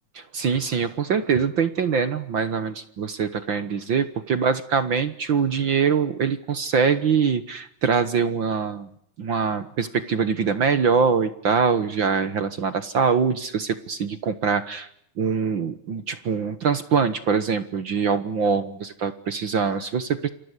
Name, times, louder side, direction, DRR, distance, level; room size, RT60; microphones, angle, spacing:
voice 1, 0.3-8.9 9.2-14.9 15.2-20.3, right 6 dB, 55° right, 12 dB, 1.5 m, -23 dB
28.5 x 23.5 x 8.3 m, 0.69 s
omnidirectional pair, 3.5 m